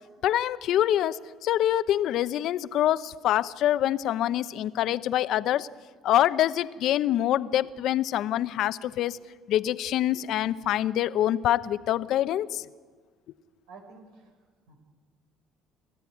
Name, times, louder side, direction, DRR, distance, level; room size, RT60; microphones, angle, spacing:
voice 1, 0.2-5.7 6.0-9.2 9.5-12.6, left 12 dB, 65° left, 14 dB, 0.8 m, -25 dB
voice 2, 13.7-14.8, right 4 dB, 85° right, 5 dB, 5.0 m, -51 dB
27.5 x 14.0 x 9.8 m, 1.5 s
supercardioid pair, 90°, 0 cm